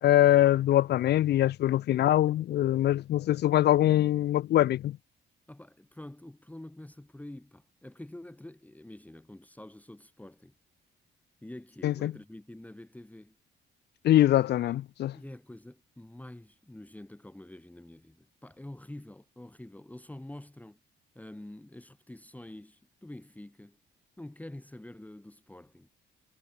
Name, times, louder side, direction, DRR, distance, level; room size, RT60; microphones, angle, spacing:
voice 1, 0.0-5.0 11.8-12.1 14.0-15.1, left 13 dB, 55° left, 0.4 m, -23 dB
voice 2, 5.5-10.5 11.4-13.4 15.1-20.8 21.1-23.8 24.2-25.9, left 1 dB, 5° left, 2.3 m, -47 dB
cardioid pair, 90°, 20 cm